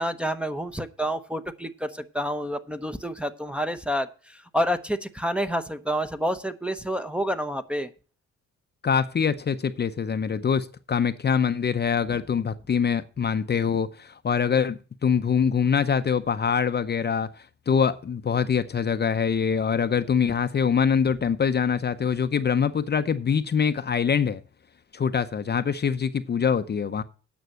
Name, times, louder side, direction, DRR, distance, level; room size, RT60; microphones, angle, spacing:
voice 1, 0.0-4.1 4.5-7.9, equal, 5° right, 0.8 m, -28 dB
voice 2, 8.8-17.3 17.7-24.4 24.9-27.0, left 6 dB, 35° left, 0.7 m, -24 dB
9.4 x 6.1 x 7.7 m
cardioid pair, 90°, 30 cm